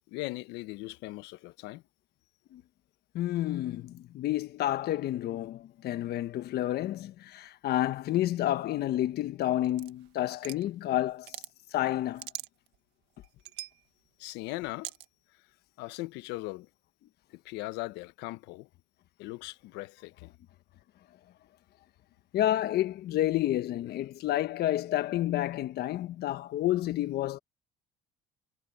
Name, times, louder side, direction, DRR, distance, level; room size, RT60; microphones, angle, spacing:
voice 1, 0.1-1.8 14.2-14.9 15.8-16.7 17.3-18.7 19.2-20.3, left 20 dB, 80° left, 1.1 m, -39 dB
voice 2, 3.1-11.3 11.7-12.3 22.3-27.4, left 13 dB, 65° left, 1.4 m, -30 dB
sound 1, 9.6-10.7 11.1-11.5 11.9-12.8 13.2-13.8 14.8-15.1, right 16 dB, 75° right, 1.7 m, -41 dB
supercardioid pair, 85°, 18 cm